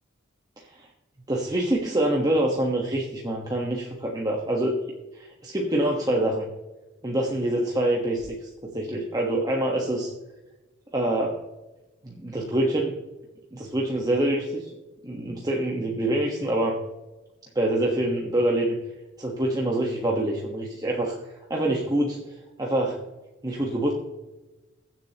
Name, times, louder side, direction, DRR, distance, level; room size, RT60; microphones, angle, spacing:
voice 1, 1.3-4.8 5.1-6.5 7.0-8.5 8.7-10.1 10.9-11.4 12.0-12.9 13.5-14.7 15.0-16.8 17.5-18.8 19.2-21.2 21.5-22.2 22.6-23.0 23.4-23.9, right 1 dB, 20° right, -2 dB, 1.3 m, -25 dB
22.5 x 7.6 x 2.9 m, 1.1 s
head